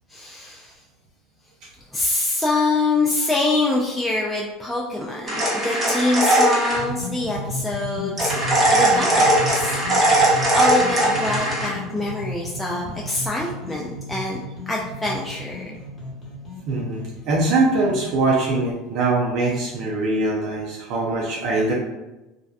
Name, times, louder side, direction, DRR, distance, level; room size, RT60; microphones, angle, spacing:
voice 1, 0.1-0.7 1.9-8.3 8.7-9.8 10.5-14.4 14.7-15.8, left 2 dB, 10° left, -3 dB, 0.3 m, -25 dB
sound 1, 5.3-6.8 8.2-11.7, right 1 dB, 25° right, 0.8 m, -19 dB
sound 2, 6.7-18.2, left 1 dB, 40° left, 1.0 m, -34 dB
voice 2, 16.7-21.7, right 2 dB, 60° right, -3 dB, 0.4 m, -22 dB
2.5 x 2.1 x 2.3 m, 1.0 s
supercardioid pair, 115°, 0 cm